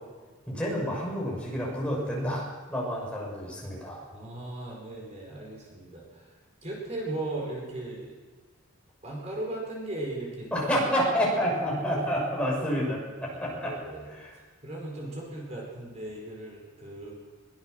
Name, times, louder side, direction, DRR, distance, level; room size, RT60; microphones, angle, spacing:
voice 1, 0.5-4.0 10.5-13.7 14.2-14.3, equal, 5° left, -4 dB, 6.3 m, -29 dB
voice 2, 4.1-6.4 6.6-8.1 9.0-10.5 13.3-14.1 14.6-17.2, right 2 dB, 35° right, -2 dB, 5.1 m, -37 dB
22.5 x 20.5 x 6.6 m, 1.4 s
head